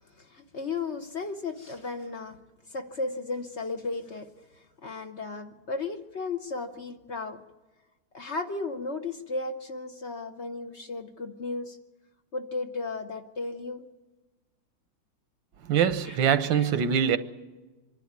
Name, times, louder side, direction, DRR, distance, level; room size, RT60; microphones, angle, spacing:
voice 1, 0.2-2.4 2.7-7.4 8.1-11.8 12.3-13.8 16.0-16.2 16.5-16.7, left 3 dB, 50° left, 0.9 m, -35 dB
voice 2, 15.7-17.2, right 8 dB, 90° right, 1.7 m, -23 dB
25.0 x 11.5 x 9.4 m
omnidirectional pair, 2.0 m